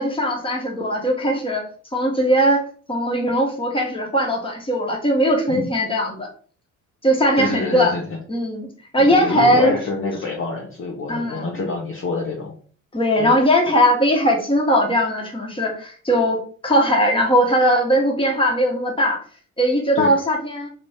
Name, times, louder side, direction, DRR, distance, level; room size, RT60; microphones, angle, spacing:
voice 1, 0.0-1.6 1.9-6.3 7.0-7.9 8.3-8.7 8.9-9.7 11.1-11.5 12.9-19.2 19.6-20.7, equal, 10° left, 0 dB, 1.3 m, -19 dB
voice 2, 7.4-8.2 9.0-12.5 13.2-13.3 19.9-20.1, left 3 dB, 30° left, -2 dB, 0.9 m, -27 dB
3.0 x 2.6 x 3.4 m, 0.43 s
hypercardioid pair, 55°, 43 cm